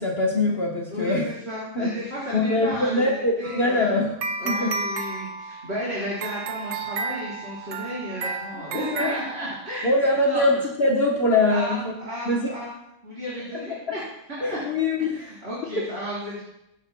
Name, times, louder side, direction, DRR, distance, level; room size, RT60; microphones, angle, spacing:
voice 1, 0.0-1.3 1.7-1.9 2.3-4.1 4.4-4.7 8.9-9.2 9.8-11.9 12.3-12.5 14.4-15.2, left 2 dB, 50° left, -2 dB, 1.3 m, -23 dB
voice 2, 0.9-3.9 4.4-10.6 11.5-12.8 13.0-14.0 14.3-14.6 15.1-16.4, equal, 45° right, -8 dB, 4.3 m, -33 dB
sound 1, 3.4-10.0, right 3 dB, 65° right, 1.1 m, -32 dB
22.0 x 10.5 x 2.2 m, 0.84 s
omnidirectional pair, 1.4 m